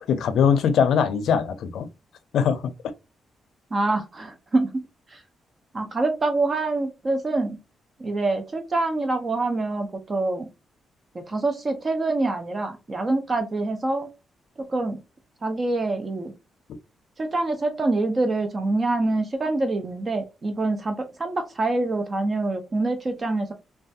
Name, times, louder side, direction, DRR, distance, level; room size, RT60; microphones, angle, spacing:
voice 1, 0.1-1.9 2.3-2.7, left 7 dB, 75° left, 0.4 m, -21 dB
voice 2, 3.7-5.2 5.7-7.6 8.0-10.5 11.1-14.1 14.6-15.0 15.4-16.3 17.2-23.5, right 2 dB, 30° right, 0.4 m, -25 dB
3.1 x 2.2 x 2.6 m
cardioid pair, 135°, 0 cm